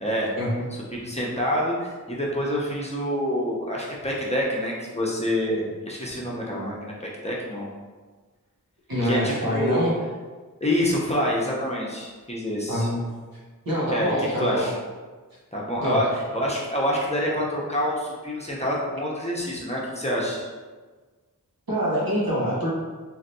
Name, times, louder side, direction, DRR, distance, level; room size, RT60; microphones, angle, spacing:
voice 1, 0.0-0.3 0.7-7.7 9.0-9.9 10.6-12.9 13.9-14.8 15.5-20.5, equal, 20° left, -5 dB, 0.7 m, -27 dB
voice 2, 8.9-9.9 12.7-13.0 13.6-14.7 15.8-16.0 21.7-22.7, equal, 85° right, -7 dB, 1.1 m, -25 dB
3.1 x 2.7 x 2.7 m, 1.4 s
wide cardioid pair, 45°, 34 cm